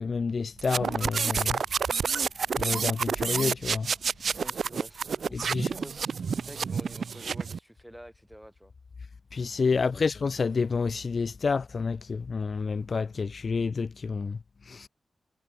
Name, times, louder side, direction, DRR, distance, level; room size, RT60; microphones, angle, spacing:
voice 1, 0.0-1.6 2.6-3.9 5.3-5.7 9.3-14.9, left 4 dB, 55° left, 0.4 m, -29 dB
sound 1, 0.6-7.6, right 6 dB, 75° right, 0.3 m, -29 dB
voice 2, 4.4-8.7 9.7-10.1, equal, 5° right, 6.4 m, -48 dB
wide cardioid pair, 95°, 0 cm